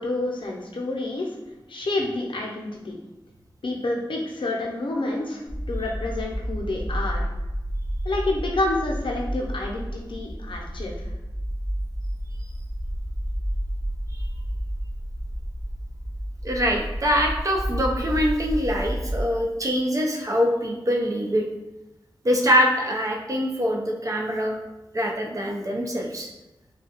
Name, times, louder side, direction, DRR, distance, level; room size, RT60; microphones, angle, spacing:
voice 1, 0.0-1.3 1.7-3.0 3.6-5.4 5.7-7.3 8.0-10.9, left 2 dB, 70° left, -1 dB, 0.6 m, -28 dB
sound 1, 5.5-19.3, equal, 10° right, 1.2 m, -30 dB
voice 2, 16.4-21.4 22.2-24.6 24.9-26.3, equal, 40° right, 1 dB, 0.6 m, -24 dB
3.5 x 2.3 x 2.9 m, 0.99 s
wide cardioid pair, 60°, 9 cm